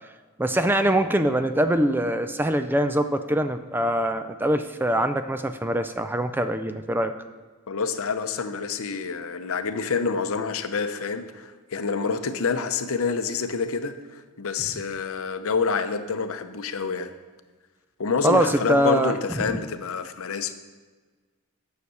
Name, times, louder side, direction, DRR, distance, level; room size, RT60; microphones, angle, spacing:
voice 1, 0.4-7.1 18.2-19.6, right 1 dB, 10° right, 9 dB, 0.4 m, -23 dB
voice 2, 7.7-17.1 18.0-20.5, left 5 dB, 65° left, 9 dB, 0.7 m, -27 dB
9.8 x 6.6 x 6.2 m, 1.4 s
head